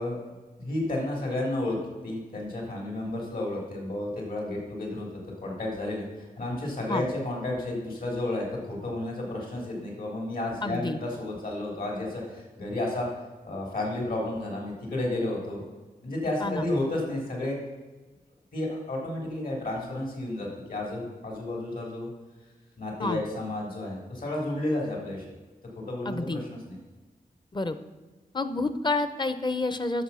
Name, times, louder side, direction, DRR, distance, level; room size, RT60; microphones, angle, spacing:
voice 1, 0.0-1.8 2.0-13.1 13.4-15.6 16.0-17.6 18.5-22.1 22.8-25.2 25.8-26.8, left 1 dB, 65° left, -1 dB, 3.6 m, -32 dB
voice 2, 10.6-11.0 16.4-16.6 23.0-23.2 26.0-26.4 27.5-27.8 28.3-30.0, left 2 dB, 30° left, 11 dB, 0.8 m, -29 dB
11.0 x 7.3 x 5.7 m, 1.3 s
wide cardioid pair, 75°, 16 cm